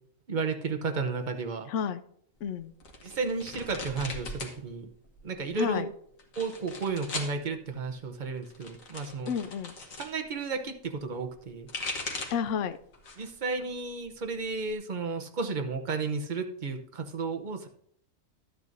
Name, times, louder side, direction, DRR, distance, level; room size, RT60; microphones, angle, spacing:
voice 1, 0.3-1.7 3.0-4.9 5.2-5.8 6.4-9.3 10.0-11.7 13.2-17.7, right 4 dB, 40° right, 6 dB, 0.9 m, -33 dB
voice 2, 1.6-2.0 2.4-2.7 5.5-5.9 9.2-9.7 12.3-12.8, left 7 dB, 70° left, 11 dB, 0.9 m, -31 dB
sound 1, 2.8-4.6 4.9-5.5 6.2-7.4 8.4-10.1 11.4-12.5 12.9-13.4 13.8-14.7, left 3 dB, 90° left, 1.7 m, -39 dB
12.0 x 9.2 x 2.6 m, 0.67 s
omnidirectional pair, 1.4 m